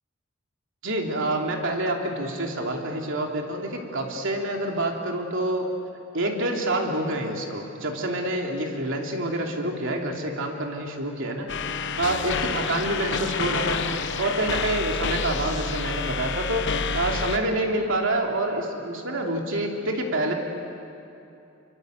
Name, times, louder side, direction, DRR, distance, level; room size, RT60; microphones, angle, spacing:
voice 1, 0.8-5.7 6.1-11.5 12.0-13.8 14.2-20.3, right 1 dB, 65° right, 1 dB, 3.1 m, -27 dB
sound 1, 11.5-17.4, left 5 dB, 60° left, 1.1 m, -28 dB
25.0 x 24.5 x 8.1 m, 2.8 s
head